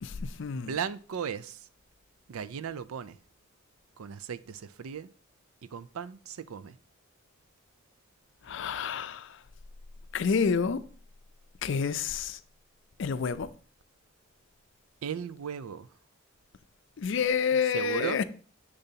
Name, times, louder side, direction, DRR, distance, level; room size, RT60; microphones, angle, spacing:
voice 1, 0.0-0.8 8.4-9.4 10.1-10.8 11.6-12.4 13.0-13.5 17.0-18.2, left 6 dB, 60° left, 0.4 m, -29 dB
voice 2, 0.5-1.6 2.3-3.1 4.0-5.1 5.7-6.7 15.0-15.9 17.7-18.2, right 7 dB, 85° right, 0.4 m, -36 dB
6.8 x 6.8 x 2.8 m
head